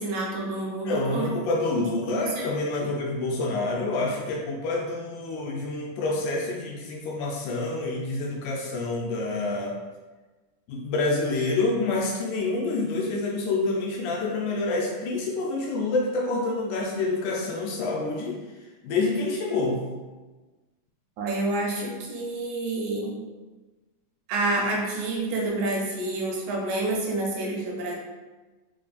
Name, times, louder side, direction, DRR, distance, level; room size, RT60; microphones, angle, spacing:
voice 1, 0.0-1.3 1.8-2.5 2.8-2.9 21.2-23.2 24.3-28.0, right 2 dB, 80° right, -2 dB, 1.9 m, -28 dB
voice 2, 0.8-9.8 10.7-18.4 18.8-19.9, left 3 dB, 80° left, -1 dB, 1.8 m, -27 dB
4.9 x 2.2 x 2.4 m, 1.2 s
omnidirectional pair, 3.7 m